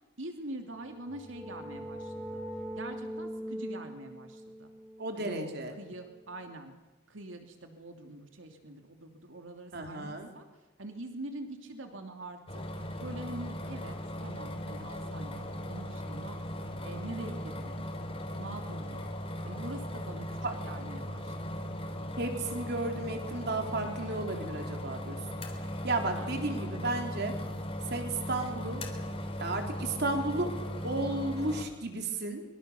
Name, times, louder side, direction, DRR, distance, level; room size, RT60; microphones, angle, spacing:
voice 1, 0.2-2.4 2.8-4.7 5.2-5.5 5.8-6.7 7.1-10.5 10.8-12.6 13.0-16.4 16.8-17.9 18.4-19.1 19.4-20.4 20.6-21.7 26.2-26.7, right 2 dB, 80° right, 5 dB, 2.8 m, -44 dB
sound 1, 0.7-6.3, equal, ahead, 3.2 m, -42 dB
voice 2, 5.0-5.7 9.7-10.3 20.4-20.6 22.2-25.2 25.8-27.4 27.9-28.9 29.4-32.4, right 2 dB, 55° right, 4 dB, 3.8 m, -33 dB
sound 2, 12.5-31.6, equal, 30° left, 3.5 m, -38 dB
24.0 x 24.0 x 7.0 m, 1.1 s
head